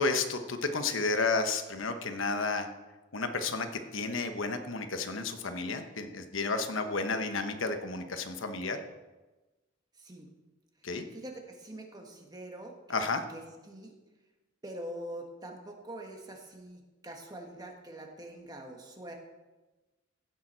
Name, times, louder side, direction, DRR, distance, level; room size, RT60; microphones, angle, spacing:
voice 1, 0.0-2.7 3.1-3.7 3.9-8.8 10.8-11.0 12.9-13.2, left 3 dB, 75° left, 7 dB, 1.0 m, -31 dB
voice 2, 9.9-10.3 11.1-13.9 14.6-19.1, right 1 dB, 20° right, 2 dB, 1.5 m, -44 dB
16.0 x 7.2 x 4.4 m, 1.1 s
head